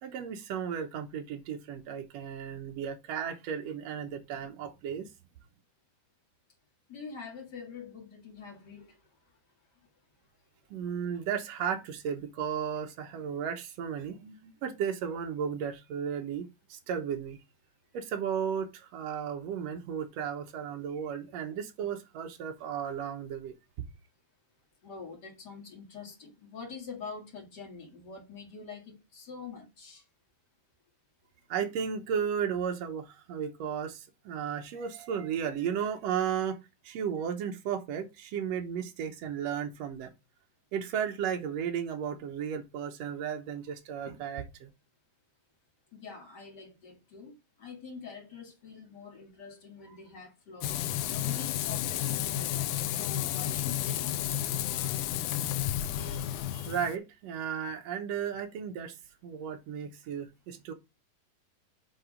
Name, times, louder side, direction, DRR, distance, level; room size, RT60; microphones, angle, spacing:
voice 1, 0.0-5.1 10.7-17.4 17.9-23.5 31.5-36.6 36.8-40.1 40.7-44.7 56.0-56.2 56.5-58.9 59.2-60.7, right 8 dB, 75° right, 1.6 m, -34 dB
voice 2, 6.9-8.9 24.8-30.0 45.9-47.3 47.6-50.7 51.1-54.9, left 5 dB, 35° left, 1.9 m, -45 dB
Frying (food), 50.6-57.0, left 12 dB, 90° left, 2.4 m, -32 dB
7.9 x 3.5 x 5.0 m
omnidirectional pair, 4.1 m